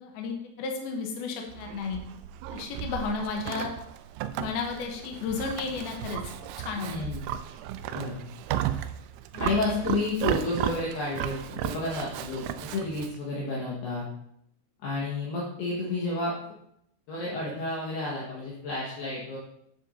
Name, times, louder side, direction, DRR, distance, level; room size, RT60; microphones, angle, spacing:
voice 1, 0.0-2.0 2.5-3.7 4.4-6.2 6.6-6.9 9.3-9.8 10.3-10.5, left 5 dB, 90° left, 2 dB, 2.2 m, -33 dB
Livestock farm animals working animals, 1.5-13.2, right 11 dB, 85° right, 3.2 m, -34 dB
voice 2, 6.9-7.2 7.9-8.3 9.4-14.1 14.8-16.4 17.1-19.4, left 2 dB, 65° left, -6 dB, 3.0 m, -31 dB
9.5 x 8.1 x 2.7 m, 0.74 s
omnidirectional pair, 5.9 m